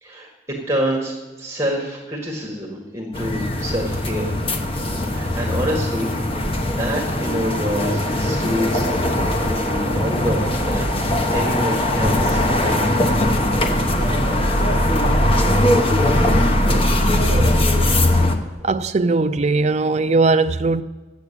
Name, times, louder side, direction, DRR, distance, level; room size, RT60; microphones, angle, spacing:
voice 1, 0.0-4.4 5.0-6.1 6.4-8.8 9.4-10.9 11.3-13.2, equal, 15° right, 1.8 m, -27 dB
sound 1, 3.1-18.4, left 1 dB, 30° left, 1.0 m, -20 dB
voice 2, 18.6-20.8, right 3 dB, 40° right, 0.4 m, -19 dB
12.0 x 8.3 x 8.4 m
head